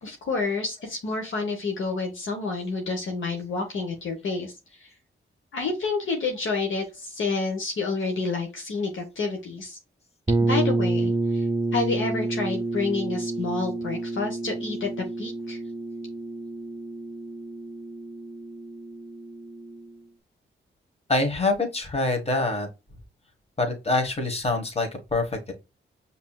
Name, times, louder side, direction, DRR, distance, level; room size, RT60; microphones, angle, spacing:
voice 1, 0.0-4.5 4.8-4.9 5.5-9.8 10.4-11.5 11.7-15.6, left 4 dB, 75° left, 2 dB, 1.0 m, -29 dB
sound 1, 10.3-19.9, right 2 dB, 20° right, 0.6 m, -29 dB
voice 2, 21.1-22.7 23.6-25.5, left 2 dB, 30° left, 4 dB, 1.2 m, -25 dB
5.4 x 2.8 x 2.2 m, 0.27 s
cardioid pair, 65°, 20 cm